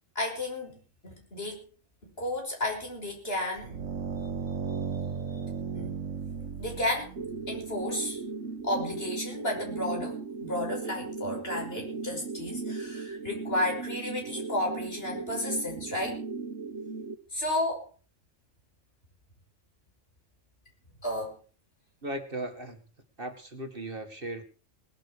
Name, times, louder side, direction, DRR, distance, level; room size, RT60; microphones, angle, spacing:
voice 1, 0.1-1.6 2.0-3.8 5.4-5.9 6.6-7.1 7.5-8.2 8.6-16.2 17.3-17.9 21.0-21.4, left 1 dB, 50° left, 1 dB, 6.1 m, -33 dB
sound 1, 3.6-7.9, right 6 dB, 90° right, 1.8 m, -36 dB
sound 2, 7.2-17.2, right 4 dB, 60° right, 1.7 m, -37 dB
voice 2, 22.0-22.8 23.2-24.4, right 1 dB, 45° right, 5 dB, 2.2 m, -37 dB
19.5 x 12.0 x 4.9 m, 0.37 s
omnidirectional pair, 1.3 m